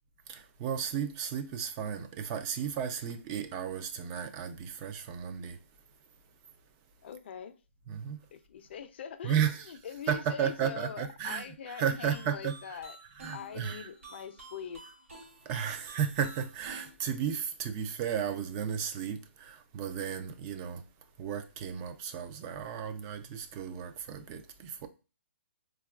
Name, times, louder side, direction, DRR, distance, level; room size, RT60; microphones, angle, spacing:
voice 1, 0.3-5.6 7.9-8.2 9.2-9.7 10.1-12.8 13.2-13.9 15.4-20.8 21.2-24.9, right 8 dB, 25° right, 0.3 m, -34 dB
voice 2, 7.0-7.5 7.9-8.0 8.3-9.4 9.7-13.0 13.3-14.8, left 8 dB, 55° left, 0.4 m, -43 dB
sound 1, 12.1-16.9, right 2 dB, 85° right, 1.3 m, -51 dB
4.1 x 2.3 x 2.3 m
hypercardioid pair, 150°, 7 cm